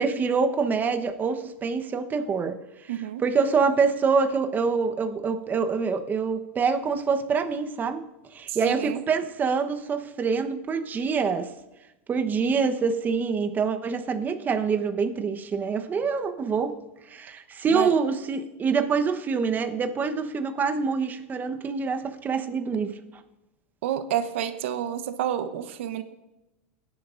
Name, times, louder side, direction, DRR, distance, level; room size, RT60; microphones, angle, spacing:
voice 1, 0.0-2.9 3.2-8.0 8.3-11.5 12.1-16.8 17.1-23.0, right 5 dB, 25° right, 1.1 m, -25 dB
voice 2, 2.9-3.2 8.5-9.0 17.7-17.9 23.8-26.0, right 10 dB, 75° right, 1.0 m, -29 dB
21.5 x 10.5 x 2.6 m
hypercardioid pair, 105°, 7 cm